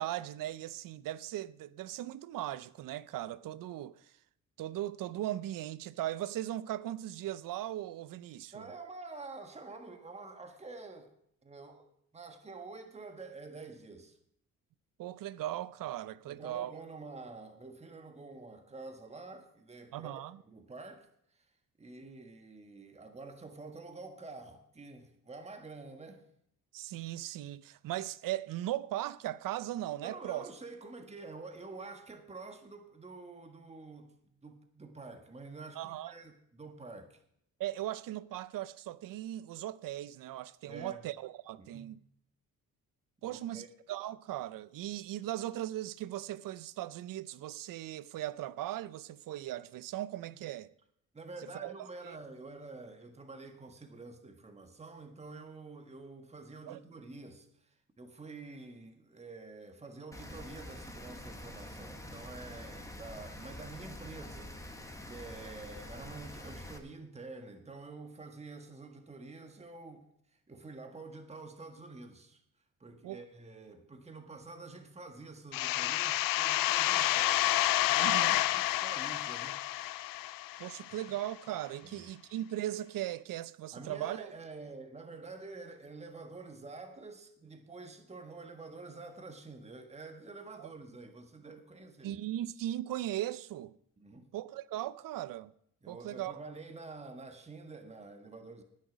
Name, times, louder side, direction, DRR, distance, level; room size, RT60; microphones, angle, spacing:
voice 1, 0.0-4.0 4.6-8.7 15.0-16.7 19.9-20.4 26.7-30.5 35.8-36.1 37.6-42.0 43.2-50.7 51.5-52.2 56.7-56.8 73.0-73.2 78.0-78.4 80.6-84.3 90.6-90.7 92.0-93.7 94.3-95.5 95.9-96.3, right 13 dB, 80° right, 0.6 m, -38 dB
voice 2, 8.5-11.1 11.4-11.9 12.1-14.2 16.3-21.5 21.8-26.2 30.0-37.2 40.7-41.0 41.6-41.9 43.2-43.7 51.1-64.8 65.1-72.4 72.8-79.6 81.8-82.0 83.7-92.2 94.0-94.3 95.8-98.6, right 3 dB, 20° right, 1.5 m, -48 dB
Rain, 60.1-66.8, left 1 dB, 10° left, 1.6 m, -46 dB
sound 1, 75.5-81.0, left 15 dB, 80° left, 0.5 m, -29 dB
19.0 x 6.4 x 5.1 m
cardioid pair, 95°, 33 cm